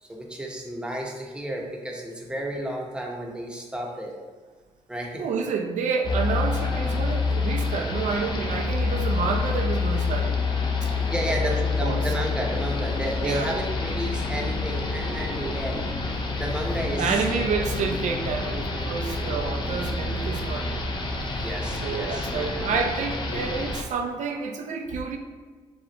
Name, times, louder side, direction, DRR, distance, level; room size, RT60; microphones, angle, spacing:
voice 1, 0.0-4.1 4.9-5.3 11.1-15.8 16.4-17.7 21.4-22.9, right 1 dB, 5° right, 0 dB, 0.9 m, -32 dB
voice 2, 5.2-10.5 10.8-10.9 11.3-12.0 13.2-13.6 17.0-20.8 21.8-25.2, right 5 dB, 75° right, 4 dB, 0.6 m, -29 dB
sound 1, 6.0-23.8, left 3 dB, 35° left, 0.8 m, -27 dB
7.1 x 2.4 x 3.0 m, 1.5 s
cardioid pair, 80°, 13 cm